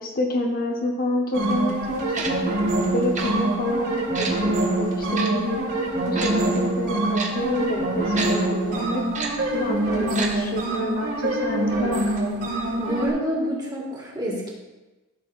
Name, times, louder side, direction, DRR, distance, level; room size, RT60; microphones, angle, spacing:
voice 1, 0.0-2.5 2.9-5.7 6.1-9.0 9.5-12.2, left 1 dB, 45° left, 1 dB, 0.9 m, -28 dB
sound 1, 1.3-13.1, right 1 dB, 60° right, 2.9 m, -25 dB
Tick-tock, 2.1-2.3 3.1-3.3 4.1-4.3 5.1-5.3 6.2-6.3 7.1-7.3 8.2-8.3 9.1-9.3 10.1-10.3 10.6-10.7, right 4 dB, 35° right, 1.0 m, -28 dB
voice 2, 12.8-14.5, equal, 20° right, -3 dB, 1.7 m, -27 dB
13.0 x 6.2 x 2.4 m, 1.1 s
head